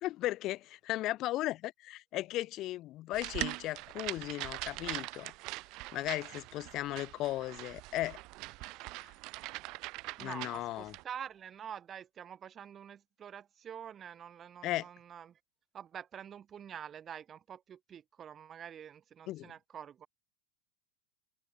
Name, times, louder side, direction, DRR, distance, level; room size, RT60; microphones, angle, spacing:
voice 1, 0.0-5.3 5.9-8.2 10.2-10.9 14.6-14.9 19.3-19.5, left 16 dB, 45° left, 1.1 m, -36 dB
sound 1, 3.1-11.0, right 23 dB, 50° right, 0.7 m, -42 dB
voice 2, 10.2-15.4 15.7-20.1, right 8 dB, 30° right, 4.6 m, -47 dB
hypercardioid pair, 105°, 0 cm